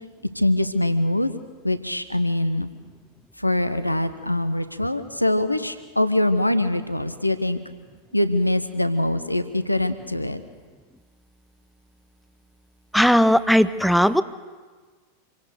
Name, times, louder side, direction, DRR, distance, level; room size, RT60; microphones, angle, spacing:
voice 1, 0.3-1.3 1.6-2.7 3.4-7.6 8.1-10.4, left 1 dB, 85° left, 11 dB, 1.0 m, -23 dB
voice 2, 12.9-14.2, equal, ahead, 14 dB, 0.7 m, -17 dB
26.0 x 17.5 x 6.7 m, 1.4 s
figure-of-eight pair, 90°, 0 cm